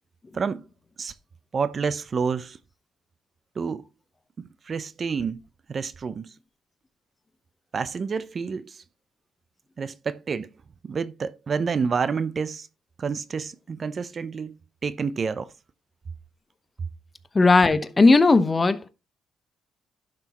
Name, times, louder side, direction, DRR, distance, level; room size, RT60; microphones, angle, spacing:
voice 1, 0.3-0.7 1.0-1.1 1.5-2.6 3.6-3.9 4.6-5.4 5.7-6.3 7.7-8.8 9.8-10.5 10.8-12.7 13.0-14.6 14.8-15.5, right 5 dB, 45° right, 0.6 m, -28 dB
voice 2, 17.3-18.8, left 3 dB, 25° left, 0.9 m, -17 dB
11.5 x 6.0 x 3.0 m
cardioid pair, 90°, 0 cm